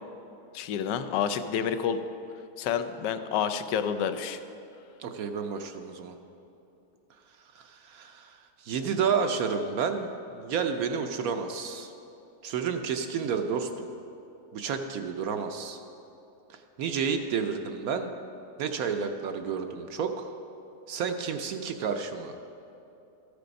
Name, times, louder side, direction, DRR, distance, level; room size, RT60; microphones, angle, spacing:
voice 1, 0.5-2.0 2.6-4.4, left 8 dB, 85° left, 9 dB, 1.2 m, -29 dB
voice 2, 5.0-6.1 7.5-11.9 12.4-13.9 14.5-15.8 16.5-18.1 18.6-20.3 20.9-22.6, right 6 dB, 70° right, 6 dB, 1.0 m, -31 dB
13.5 x 6.8 x 5.1 m, 2.8 s
omnidirectional pair, 1.8 m